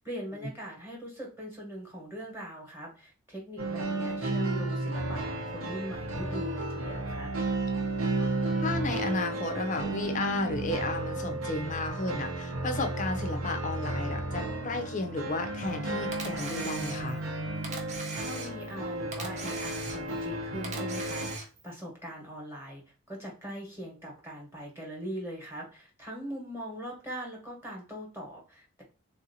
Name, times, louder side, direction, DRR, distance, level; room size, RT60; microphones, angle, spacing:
voice 1, 0.0-7.3 18.1-28.8, equal, 10° right, 1.0 m, -41 dB
sound 1, 3.6-21.4, right 2 dB, 65° right, 0.7 m, -33 dB
voice 2, 8.6-17.2, left 2 dB, 35° left, 0.5 m, -33 dB
Camera, 16.1-17.3 17.6-18.8 19.1-20.3 20.6-21.7, right 3 dB, 30° right, 0.6 m, -40 dB
3.5 x 2.6 x 2.6 m
head